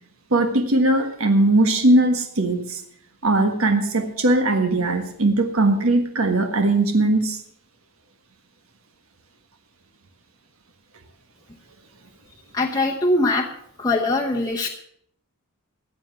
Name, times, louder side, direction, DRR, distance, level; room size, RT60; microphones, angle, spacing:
voice 1, 0.3-2.8 3.2-7.4, right 2 dB, 70° right, 6 dB, 1.5 m, -19 dB
voice 2, 12.5-13.5 13.8-14.7, left 2 dB, 15° left, 0 dB, 0.9 m, -21 dB
14.5 x 8.1 x 6.9 m, 0.66 s
head